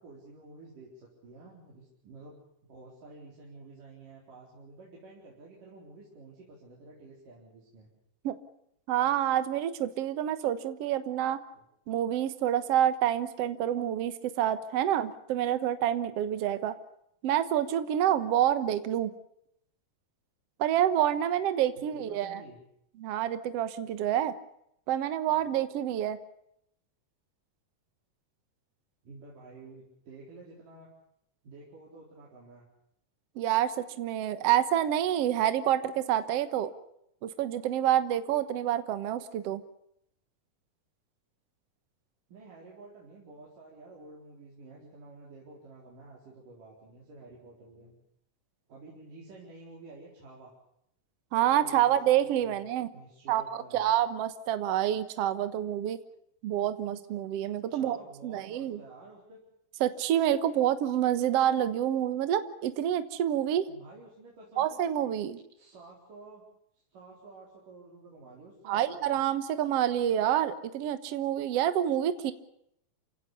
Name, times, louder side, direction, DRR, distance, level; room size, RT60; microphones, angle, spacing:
voice 1, 0.0-2.4 2.7-7.9 11.5-11.6 21.8-22.6 25.3-25.4 29.0-30.9 31.4-32.7 42.3-47.9 48.7-50.5 51.6-51.9 52.2-52.6 52.9-53.9 57.7-59.4 63.7-64.9 65.6-66.4 66.9-69.2, right 3 dB, 75° right, -4 dB, 5.9 m, -51 dB
voice 2, 8.9-11.4 11.9-16.8 17.2-19.1 20.6-22.4 23.0-24.4 24.9-26.2 33.4-36.7 37.2-39.6 51.3-52.9 53.3-56.0 56.4-58.0 58.2-58.8 59.8-63.7 64.6-65.4 68.7-72.3, right 11 dB, 60° right, 12 dB, 1.9 m, -27 dB
28.5 x 17.0 x 6.8 m, 0.75 s
omnidirectional pair, 3.8 m